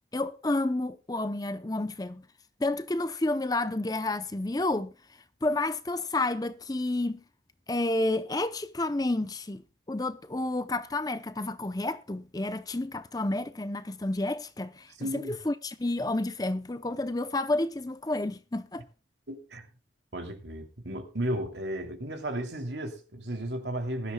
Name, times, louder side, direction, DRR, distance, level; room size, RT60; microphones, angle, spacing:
voice 1, 0.1-2.3 2.6-4.9 5.4-7.2 7.7-9.6 9.9-18.9, left 2 dB, 20° left, 0.6 m, -30 dB
voice 2, 15.0-15.3 19.3-19.7 20.1-24.1, right 1 dB, 70° right, 2.9 m, -34 dB
20.5 x 12.5 x 2.2 m
head